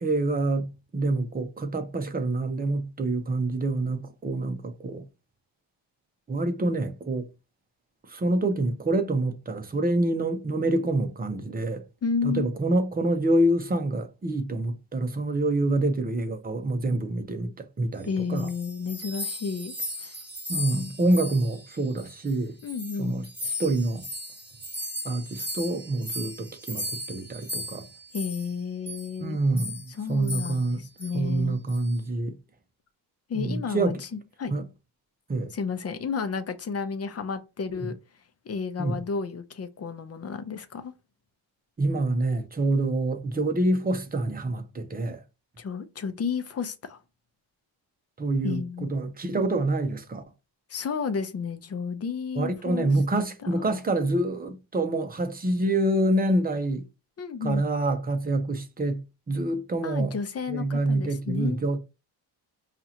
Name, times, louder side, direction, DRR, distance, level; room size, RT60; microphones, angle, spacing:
voice 1, 0.0-5.1 6.3-7.3 8.1-11.8 12.2-18.5 20.5-22.6 23.0-23.3 23.6-24.1 25.0-27.9 29.2-30.8 31.1-32.4 33.3-34.0 34.5-34.7 35.3-35.5 37.8-37.9 38.8-39.0 41.8-45.2 48.2-50.2 52.4-56.9 57.4-60.2 60.5-61.8, right 2 dB, 20° right, 0.7 m, -26 dB
voice 2, 12.0-12.5 18.1-19.8 20.0-20.1 22.6-23.2 28.1-29.4 30.0-31.6 33.3-34.5 35.5-37.9 38.4-40.9 45.6-47.0 48.4-48.9 50.7-52.9 53.4-53.7 57.2-57.6 59.8-61.6, left 5 dB, 35° left, 0.7 m, -32 dB
sound 1, 18.1-22.4 22.6-28.5 28.9-29.1 29.6-29.9 30.2-30.7 31.0-31.2 31.7-32.0, left 1 dB, 5° right, 2.2 m, -37 dB
5.3 x 2.5 x 2.9 m
cardioid pair, 100°, 44 cm